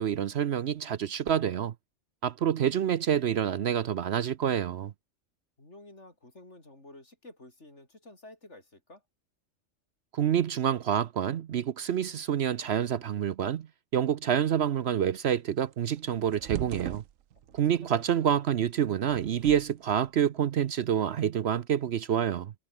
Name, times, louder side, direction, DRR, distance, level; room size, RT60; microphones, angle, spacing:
voice 1, 0.0-1.7 2.2-4.9 10.1-13.7 13.9-17.0 17.5-22.5, right 9 dB, 60° right, 0.9 m, -27 dB
voice 2, 5.6-9.0 17.5-18.0, left 2 dB, 60° left, 6.0 m, -51 dB
sound 1, 15.7-17.7 19.0-20.0, right 11 dB, 90° right, 1.1 m, -39 dB
omnidirectional pair, 1.3 m